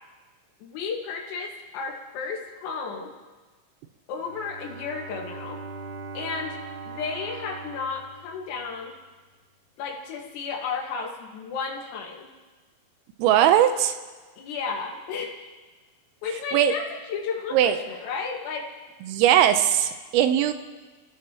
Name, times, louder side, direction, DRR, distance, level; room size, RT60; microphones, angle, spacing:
voice 1, 0.6-3.1 4.1-5.6 6.1-6.6 6.9-9.0 9.8-12.3 14.4-15.5 16.2-18.7, left 5 dB, 90° left, -1 dB, 4.6 m, -33 dB
Bowed string instrument, 4.2-9.2, right 4 dB, 70° right, 4.2 m, -40 dB
voice 2, 13.2-13.9 16.5-16.7 17.5-17.8 19.1-20.5, right 11 dB, 85° right, 8 dB, 3.5 m, -19 dB
29.0 x 16.5 x 3.1 m, 1.4 s
omnidirectional pair, 5.9 m